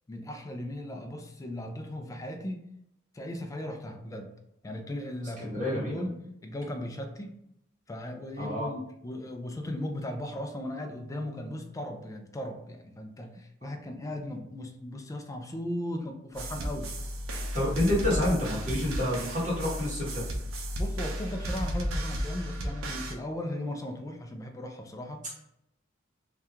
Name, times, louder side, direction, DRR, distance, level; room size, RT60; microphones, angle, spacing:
voice 1, 0.1-2.7 3.1-4.3 4.6-7.4 7.9-16.9 20.8-25.2, left 1 dB, 15° left, 4 dB, 0.3 m, -37 dB
voice 2, 5.4-6.0 8.4-8.7 17.5-20.2, left 1 dB, 40° right, -6 dB, 1.3 m, -28 dB
sound 1, 16.3-23.1, equal, 90° right, 0.5 m, -33 dB
2.7 x 2.3 x 3.4 m, 0.81 s
head